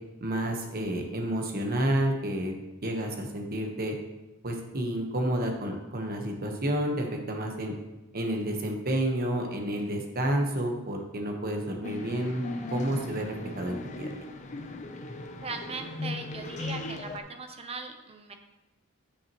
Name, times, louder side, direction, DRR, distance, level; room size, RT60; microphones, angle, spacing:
voice 1, 0.2-2.5 2.8-3.9 4.4-7.7 8.1-12.4 12.7-14.2, right 1 dB, 45° right, 2 dB, 1.2 m, -30 dB
sound 1, 11.8-17.2, left 2 dB, 35° left, 0.6 m, -38 dB
voice 2, 15.4-18.3, right 4 dB, 30° right, 6 dB, 0.7 m, -39 dB
9.9 x 6.0 x 3.0 m, 1.0 s
head